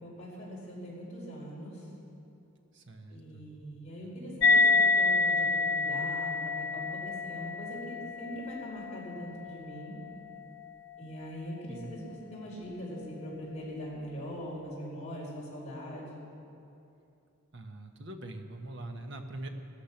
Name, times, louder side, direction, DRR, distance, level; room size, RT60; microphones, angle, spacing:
voice 1, 0.0-1.9 3.1-10.0 11.0-16.1, equal, 30° left, -6 dB, 4.8 m, -42 dB
voice 2, 2.7-3.4 11.7-11.9 17.5-19.5, right 2 dB, 55° right, 5 dB, 1.2 m, -43 dB
sound 1, 4.4-11.3, left 3 dB, 60° left, 0.5 m, -28 dB
17.0 x 13.5 x 5.9 m, 2.7 s
head